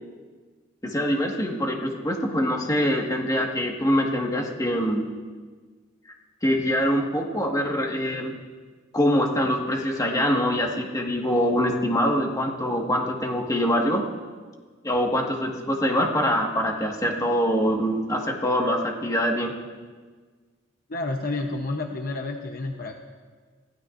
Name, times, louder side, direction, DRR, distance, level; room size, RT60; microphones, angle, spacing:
voice 1, 0.8-5.1 6.4-8.3 8.9-14.0 14.8-19.5, equal, 20° left, 0 dB, 1.7 m, -24 dB
voice 2, 20.9-22.9, left 2 dB, 50° left, 3 dB, 0.9 m, -30 dB
23.0 x 15.5 x 2.6 m, 1.5 s
head